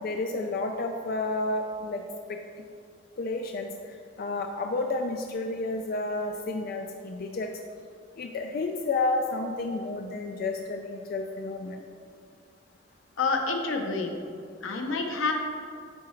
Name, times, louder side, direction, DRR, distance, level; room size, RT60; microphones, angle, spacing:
voice 1, 0.0-2.0 2.3-2.4 3.2-3.7 4.2-7.5 8.2-11.8, left 2 dB, 50° left, 4 dB, 0.3 m, -31 dB
voice 2, 13.2-14.2 14.6-15.3, left 4 dB, 85° left, 3 dB, 0.8 m, -28 dB
8.4 x 4.7 x 3.2 m, 2.4 s
head